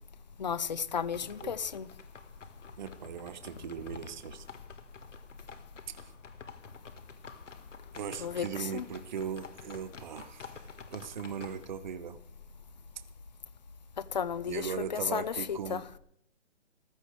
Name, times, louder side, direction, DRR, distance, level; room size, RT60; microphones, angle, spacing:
voice 1, 0.4-1.9 8.2-8.9 14.0-15.8, left 7 dB, 40° left, 0.5 m, -33 dB
sound 1, 0.9-11.7, left 5 dB, 80° left, 1.8 m, -50 dB
voice 2, 2.8-4.4 7.9-10.6 10.9-12.2 14.5-15.8, right 7 dB, 40° right, 0.8 m, -38 dB
15.0 x 12.5 x 4.8 m
hypercardioid pair, 165°, 37 cm